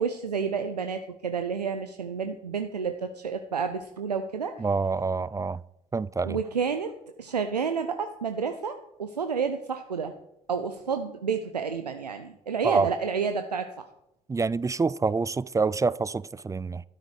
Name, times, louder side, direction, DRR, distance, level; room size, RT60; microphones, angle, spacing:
voice 1, 0.0-4.5 6.2-6.9 7.2-10.1 10.5-13.9, right 6 dB, 85° right, 0.6 m, -30 dB
voice 2, 4.6-5.6 5.9-6.4 12.6-12.9 14.3-16.8, right 4 dB, 15° right, 0.4 m, -26 dB
13.0 x 12.5 x 4.9 m
figure-of-eight pair, 50°, 20 cm